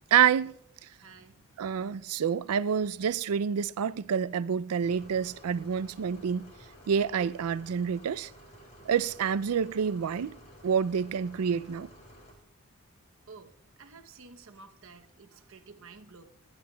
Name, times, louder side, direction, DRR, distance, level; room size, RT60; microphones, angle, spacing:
voice 1, 0.1-0.5 1.6-6.5 6.9-8.3 8.9-10.3 10.6-11.9, right 7 dB, 85° right, 0.4 m, -27 dB
voice 2, 0.9-1.6 13.3-16.2, right 4 dB, 65° right, 0.8 m, -52 dB
sound 1, 4.8-12.3, equal, 30° left, 3.1 m, -53 dB
29.5 x 10.5 x 2.3 m
head